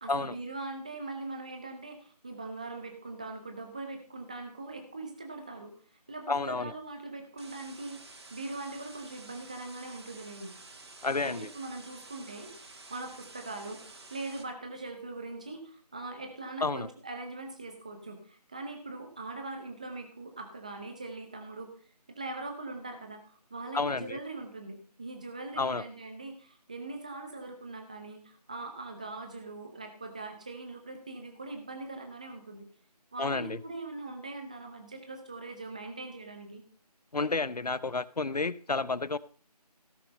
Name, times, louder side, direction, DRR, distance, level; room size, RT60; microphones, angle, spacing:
voice 1, 0.0-8.0 8.3-10.5 11.2-21.7 22.1-32.6 33.1-36.6, right 2 dB, 10° right, 4 dB, 0.8 m, -41 dB
voice 2, 6.3-6.7 11.0-11.5 16.6-16.9 23.7-24.2 25.6-25.8 33.2-33.6 37.1-39.2, left 3 dB, 70° left, 18 dB, 0.8 m, -30 dB
sound 1, 7.4-14.4, right 3 dB, 40° right, 1.9 m, -51 dB
16.5 x 6.6 x 5.3 m, 0.43 s
figure-of-eight pair, 165°, 21 cm